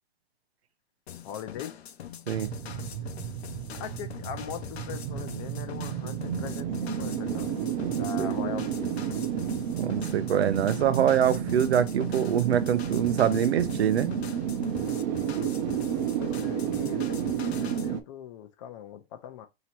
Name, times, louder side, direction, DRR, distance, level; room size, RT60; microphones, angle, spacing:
sound 1, 1.1-17.9, left 9 dB, 80° left, 0.7 m, -43 dB
voice 1, 1.2-1.8 3.8-7.5 7.9-9.0 16.2-19.5, left 9 dB, 35° left, 0.6 m, -40 dB
sound 2, 2.3-18.0, right 8 dB, 40° right, 0.8 m, -31 dB
voice 2, 7.8-8.3 9.8-14.1, right 9 dB, 80° right, 0.6 m, -25 dB
3.0 x 2.9 x 4.4 m
hypercardioid pair, 145°, 31 cm